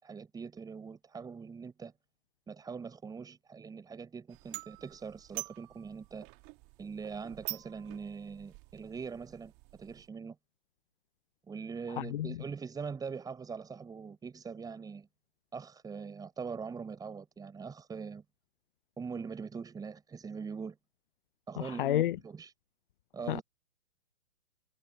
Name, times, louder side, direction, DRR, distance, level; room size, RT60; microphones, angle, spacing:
voice 1, 0.0-1.9 2.5-6.3 6.8-10.4 11.5-15.1 15.5-18.2 19.0-20.8 21.5-22.5 23.1-23.4, right 5 dB, 10° right, 5.5 m, -42 dB
sound 1, 4.3-10.1, right 30 dB, 30° right, 2.3 m, -46 dB
voice 2, 12.0-12.3 21.6-22.2 23.3-23.4, left 13 dB, 45° left, 0.7 m, -30 dB
hypercardioid pair, 130°, 38 cm